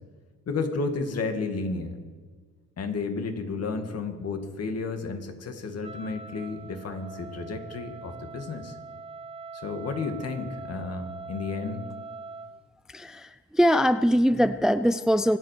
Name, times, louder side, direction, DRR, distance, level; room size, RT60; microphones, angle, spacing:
voice 1, 0.5-2.0 2.8-8.8 9.5-11.9, left 4 dB, 55° left, 6 dB, 2.3 m, -32 dB
Wind instrument woodwind instrument, 5.8-12.6, right 4 dB, 20° right, 0.8 m, -42 dB
voice 2, 12.9-15.4, equal, ahead, 13 dB, 0.5 m, -22 dB
24.5 x 8.3 x 6.8 m, 1.5 s
cardioid pair, 90°, 30 cm